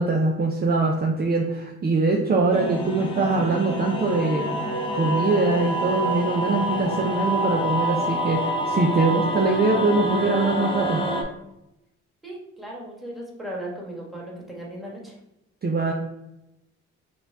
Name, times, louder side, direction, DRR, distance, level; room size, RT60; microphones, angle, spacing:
voice 1, 0.0-4.4 4.9-11.0 15.6-15.9, right 3 dB, 30° right, 0 dB, 0.6 m, -22 dB
sound 1, 2.5-11.2, equal, 15° left, 0.8 m, -27 dB
voice 2, 12.2-15.2, right 1 dB, ahead, -3 dB, 1.4 m, -36 dB
5.2 x 2.3 x 3.4 m, 0.89 s
cardioid pair, 90°, 30 cm